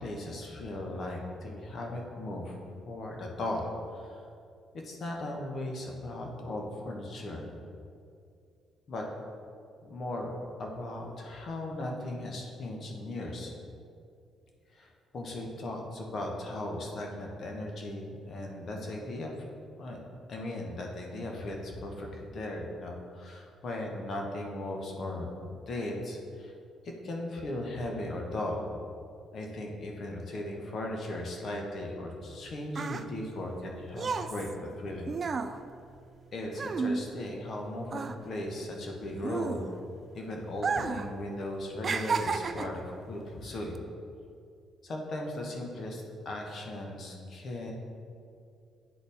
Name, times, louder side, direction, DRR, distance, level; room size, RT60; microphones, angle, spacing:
voice 1, 0.0-2.6 2.8-4.3 4.8-7.5 8.9-9.0 9.8-13.5 14.7-19.5 19.8-20.0 20.3-25.3 25.7-26.5 27.0-28.7 29.3-35.1 36.3-39.7 40.1-43.8 44.8-47.7, left 1 dB, 55° left, 0 dB, 1.2 m, -37 dB
sound 1, 32.2-37.6 37.9-40.0 40.5-41.1 41.4-42.9 43.6-43.8, right 5 dB, 45° right, 0.3 m, -33 dB
9.9 x 4.1 x 3.5 m, 2.4 s
supercardioid pair, 60°, 0 cm